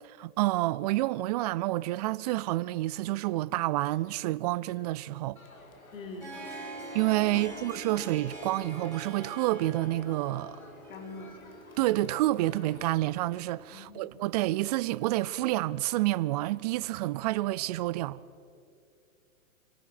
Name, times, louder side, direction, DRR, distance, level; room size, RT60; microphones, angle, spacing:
voice 1, 0.0-5.4 6.9-10.6 11.8-18.2, right 17 dB, 30° right, 0.4 m, -29 dB
Crowd, 5.4-12.9, left 2 dB, 90° left, 2.9 m, -52 dB
voice 2, 5.9-6.3 10.9-11.3 13.7-14.1, left 3 dB, 70° left, 3.5 m, -43 dB
Harp, 5.9-13.7, right 1 dB, 5° left, 6.0 m, -45 dB
25.0 x 18.0 x 5.9 m
hypercardioid pair, 115°, 41 cm